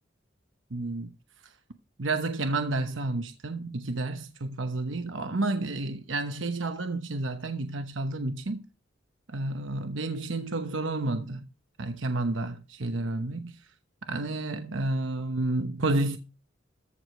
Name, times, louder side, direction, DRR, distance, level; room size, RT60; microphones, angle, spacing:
voice 1, 0.7-1.1 2.0-8.6 9.3-11.5 11.8-13.6 14.1-16.2, right 2 dB, 80° right, 1.0 m, -30 dB
14.0 x 5.0 x 6.2 m
head